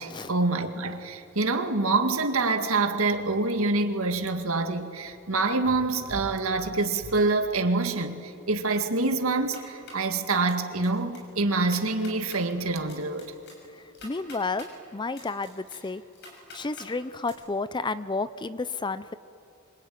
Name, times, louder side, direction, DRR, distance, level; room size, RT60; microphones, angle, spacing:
voice 1, 0.0-13.3, right 3 dB, 75° right, 2.0 m, -26 dB
sound 1, 9.3-10.1 10.5-10.9 11.1-11.2 11.6-12.4 12.9-14.7 15.1-16.9 17.2-17.3, left 2 dB, 55° left, 6.7 m, -47 dB
voice 2, 13.7-16.0 16.5-19.1, left 3 dB, 20° left, 0.6 m, -31 dB
25.5 x 23.5 x 9.5 m
head